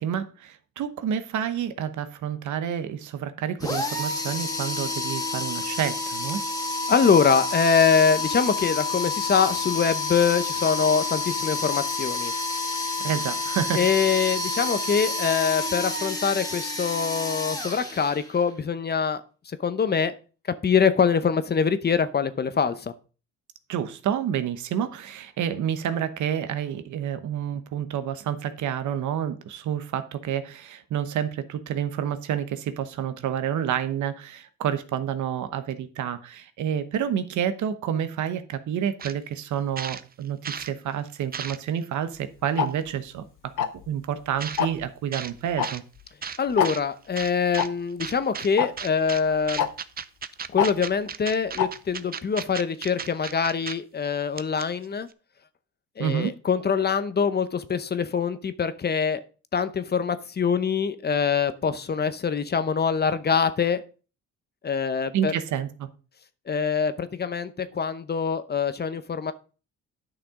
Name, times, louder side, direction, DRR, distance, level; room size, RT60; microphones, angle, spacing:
voice 1, 0.0-6.4 13.0-13.8 23.7-43.5 43.9-45.8 56.0-56.3 65.1-65.9, right 9 dB, 75° right, 0.9 m, -29 dB
sound 1, 3.6-18.5, left 3 dB, 10° left, 1.8 m, -29 dB
voice 2, 6.9-12.3 13.7-20.1 20.6-22.9 46.4-49.7 50.5-55.1 56.0-59.2 59.5-63.8 64.6-65.3 66.5-69.3, left 6 dB, 35° left, 0.8 m, -24 dB
sound 2, 39.0-39.2 39.5-40.7 41.1-41.8 42.7-42.8 44.4-44.6 45.1-45.3 45.6-45.8 46.2-46.8 47.2-47.7 48.0-48.5 48.8-49.2 49.5-53.7 54.0-54.1 54.4-54.8, right 7 dB, 30° right, 0.5 m, -35 dB
Tick-tock, 42.6-42.7 43.6-43.9 44.6-44.8 45.6-45.7 46.0-46.1 46.6-46.7 47.6-47.7 48.6-48.7 49.6-49.7 50.6-50.7 51.6-51.7, left 9 dB, 85° left, 0.8 m, -23 dB
9.8 x 5.9 x 3.7 m
cardioid pair, 90°, 30 cm